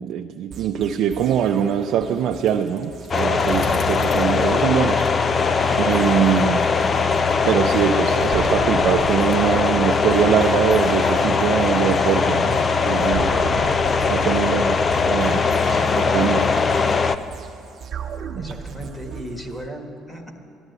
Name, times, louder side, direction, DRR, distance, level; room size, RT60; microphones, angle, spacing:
voice 1, 0.0-5.1 5.7-6.7 7.4-13.3 14.1-14.8 15.1-15.4 16.1-16.5 18.4-18.5, right 9 dB, 60° right, 3 dB, 0.6 m, -22 dB
sound 1, 0.5-19.7, right 7 dB, 40° right, 1.1 m, -37 dB
Bicycle, 2.3-6.1, left 4 dB, 50° left, 1.3 m, -43 dB
sound 2, 3.1-17.2, left 5 dB, 30° left, 0.5 m, -20 dB
voice 2, 18.3-20.3, equal, 10° left, 3 dB, 1.6 m, -38 dB
12.5 x 11.5 x 8.1 m, 2.7 s
cardioid pair, 140°, 0 cm